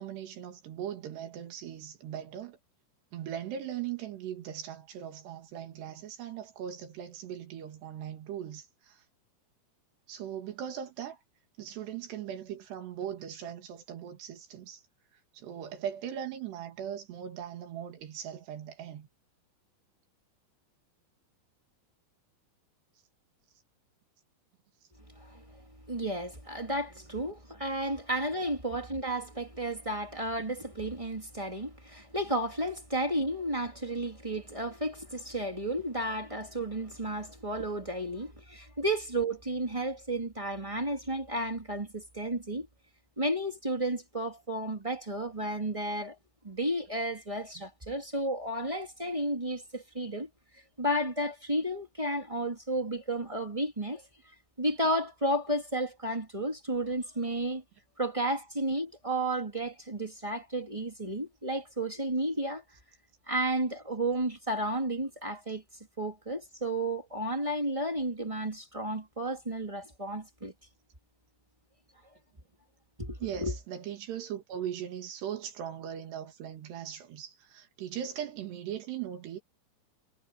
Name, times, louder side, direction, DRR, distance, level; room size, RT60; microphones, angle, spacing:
voice 1, 0.0-2.6 3.1-9.0 10.1-11.2 11.6-14.8 15.3-19.1 47.6-47.7 73.2-79.4, right 9 dB, 80° right, 4.2 m, -39 dB
voice 2, 25.1-25.6 25.9-42.7 43.2-46.1 46.4-50.3 50.8-54.0 54.6-57.6 58.0-62.6 63.3-65.6 66.0-70.5 73.0-73.5, right 1 dB, 15° right, 1.3 m, -32 dB
omnidirectional pair, 4.8 m